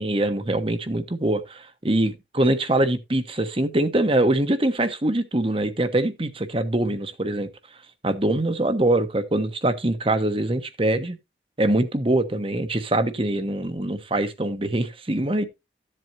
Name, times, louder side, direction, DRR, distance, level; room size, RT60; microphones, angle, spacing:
voice 1, 0.0-7.5 8.0-11.2 11.6-15.4, right 1 dB, 30° right, 1.1 m, -23 dB
14.0 x 7.7 x 2.8 m
head